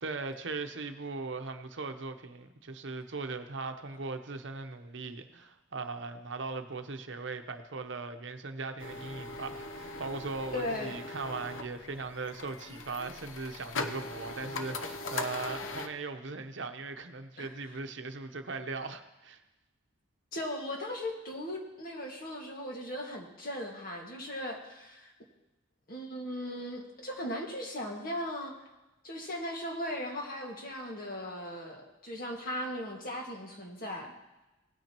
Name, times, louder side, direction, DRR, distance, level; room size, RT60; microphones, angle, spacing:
voice 1, 0.0-19.4, right 3 dB, 70° right, 7 dB, 0.8 m, -39 dB
sound 1, 8.8-15.9, left 3 dB, 85° left, 0.8 m, -40 dB
voice 2, 10.5-10.9 17.4-17.5 20.3-25.1 25.9-28.6 29.0-34.1, left 1 dB, 50° left, 0 dB, 1.9 m, -38 dB
18.0 x 9.1 x 3.0 m, 1.0 s
head